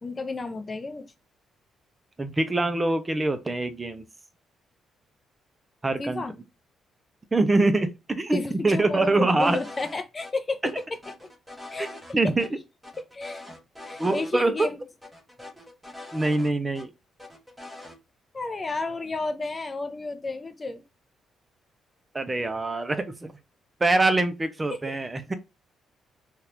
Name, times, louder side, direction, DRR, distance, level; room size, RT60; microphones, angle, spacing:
voice 1, 0.0-1.1 6.0-6.4 8.3-11.3 11.7-12.0 13.0-13.5 13.8-14.8 18.3-20.8 24.7-24.8, left 3 dB, 30° left, 0.5 m, -32 dB
voice 2, 2.2-4.0 5.8-6.2 7.3-8.4 8.6-9.6 11.8-11.9 12.1-12.5 14.0-14.7 16.1-16.9 22.1-23.3 23.8-25.3, right 2 dB, 20° right, 0.5 m, -24 dB
sound 1, 9.4-10.0 10.2-10.3 10.7-12.1 12.4-12.5 12.8-14.3 14.6-14.7 15.0-16.9 17.2-18.0, left 2 dB, 5° right, 1.0 m, -43 dB
2.9 x 2.4 x 3.3 m
cardioid pair, 90°, 0 cm